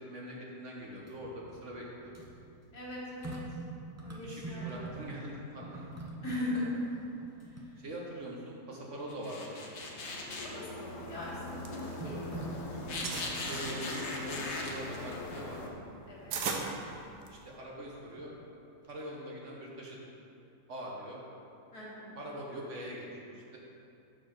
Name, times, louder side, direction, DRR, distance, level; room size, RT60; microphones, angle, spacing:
voice 1, 0.0-2.2 4.2-5.8 7.8-9.6 13.4-15.6 17.3-18.4 18.8-20.0 20.7-21.2 22.1-23.6, right 1 dB, 55° right, -2 dB, 1.1 m, -43 dB
sound 1, 0.9-5.2 5.5-8.3 8.8-8.9 10.6-11.1 12.0-13.5 15.1-15.6 16.5-17.2 17.6-18.6 18.8-18.9, right 2 dB, 25° right, 0.3 m, -45 dB
voice 2, 2.7-3.4 4.0-5.1 6.2-6.7 10.4-11.4 11.7-12.4 16.1-16.5 21.7-22.1, left 1 dB, 70° left, -6 dB, 2.2 m, -40 dB
sound 2, 9.1-15.7, left 2 dB, 50° left, 1.0 m, -39 dB
sound 3, 11.3-12.5 12.7-13.4 14.0-17.6, right 5 dB, 85° right, 1.3 m, -39 dB
6.8 x 4.8 x 5.9 m, 2.7 s
omnidirectional pair, 1.7 m